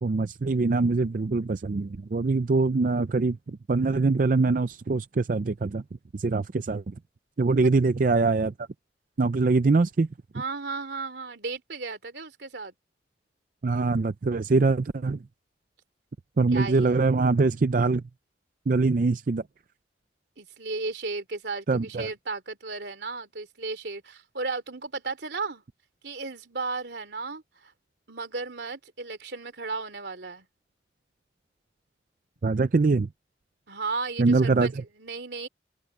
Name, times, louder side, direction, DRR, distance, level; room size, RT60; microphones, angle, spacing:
voice 1, 0.0-5.8 6.1-6.9 7.4-8.5 9.2-10.1 13.6-15.2 16.4-18.0 18.7-19.4 21.7-22.1 32.4-33.1 34.2-34.7, right 3 dB, 50° right, 0.4 m, -23 dB
voice 2, 10.3-12.7 16.5-17.0 20.4-25.6 26.0-27.7 28.1-30.5 33.7-35.5, right 3 dB, 75° right, 2.9 m, -34 dB
head